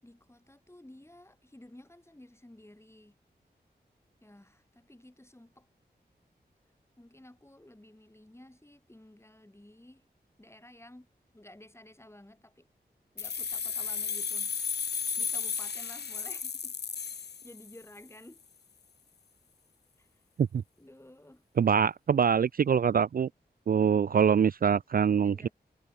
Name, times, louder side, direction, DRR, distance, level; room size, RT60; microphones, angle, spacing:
voice 1, 0.0-3.2 4.2-5.7 7.0-10.1 10.4-11.1 11.3-12.7 13.1-14.6 14.8-16.8 17.0-18.4 20.0-20.2 20.8-21.4 25.2-25.5, left 1 dB, 15° left, 7.3 m, -53 dB
sound 1, 13.2-18.0, left 6 dB, 75° left, 1.0 m, -34 dB
voice 2, 21.6-23.3 23.7-25.5, right 7 dB, 60° right, 0.4 m, -24 dB
wide cardioid pair, 60°, 17 cm